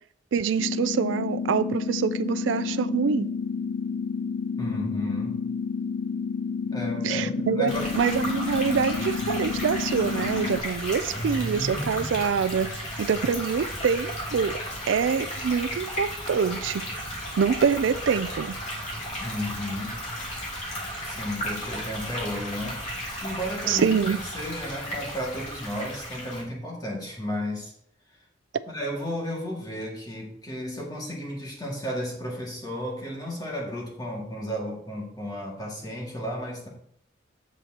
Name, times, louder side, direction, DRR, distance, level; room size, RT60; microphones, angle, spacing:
voice 1, 0.3-3.3 7.0-14.6 14.9-16.8 17.4-18.6 23.7-24.2, right 6 dB, 80° right, 0.4 m, -25 dB
sound 1, 0.6-10.6, left 5 dB, 70° left, 0.4 m, -30 dB
voice 2, 4.6-5.4 6.6-7.9 8.2-8.4 19.2-20.0 21.0-22.9 23.2-27.7 28.7-36.7, equal, 20° left, 2.0 m, -33 dB
sound 2, 7.7-26.4, equal, 40° left, 2.7 m, -34 dB
8.3 x 7.4 x 2.9 m
head